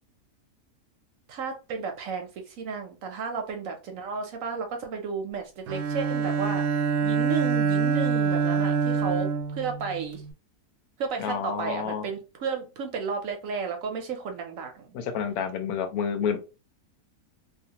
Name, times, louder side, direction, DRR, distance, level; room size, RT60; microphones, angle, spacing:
voice 1, 1.3-6.8 7.0-10.2 11.0-14.9, right 5 dB, 70° right, 4 dB, 0.9 m, -33 dB
Bowed string instrument, 5.7-10.3, right 5 dB, 90° right, 1.1 m, -26 dB
voice 2, 11.2-12.1 14.9-16.4, left 7 dB, 75° left, 7 dB, 1.0 m, -29 dB
2.6 x 2.4 x 2.8 m, 0.30 s
omnidirectional pair, 1.6 m